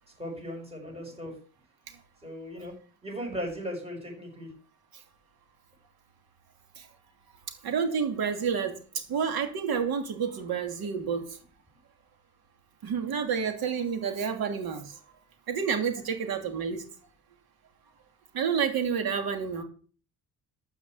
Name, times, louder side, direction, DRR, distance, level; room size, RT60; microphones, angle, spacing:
voice 1, 0.2-1.3 2.2-2.7 3.0-4.5, equal, 15° right, 1 dB, 6.1 m, -37 dB
voice 2, 7.6-8.8 9.1-11.3 12.8-14.9 15.5-16.8 18.3-19.6, right 6 dB, 85° right, 5 dB, 2.8 m, -29 dB
13.0 x 5.8 x 8.3 m, 0.41 s
cardioid pair, 145°, 36 cm